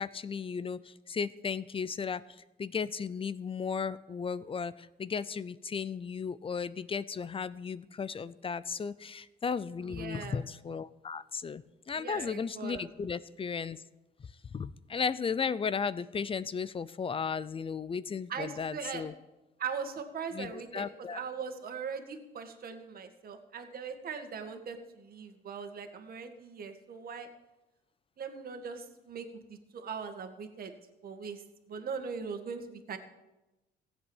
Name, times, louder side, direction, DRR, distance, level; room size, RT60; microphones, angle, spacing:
voice 1, 0.0-2.2 2.6-13.8 14.2-19.1 20.3-21.2, left 6 dB, 30° left, 18 dB, 0.6 m, -35 dB
voice 2, 9.8-10.4 11.9-12.9 18.3-19.0 19.6-27.3 28.2-30.7 31.0-33.0, right 6 dB, 50° right, 6 dB, 2.0 m, -40 dB
16.0 x 8.3 x 7.3 m, 1.0 s
cardioid pair, 100°, 19 cm